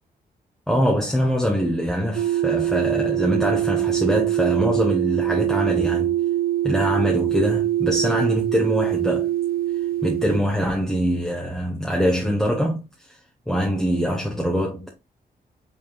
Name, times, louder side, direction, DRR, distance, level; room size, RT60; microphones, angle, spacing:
voice 1, 0.7-6.1 6.6-9.3 10.0-12.8 13.5-14.9, equal, ahead, 1.3 m, -23 dB
sound 1, 2.2-10.4, right 13 dB, 65° right, 0.5 m, -23 dB
5.4 x 3.4 x 2.4 m
cardioid pair, 65°, 17 cm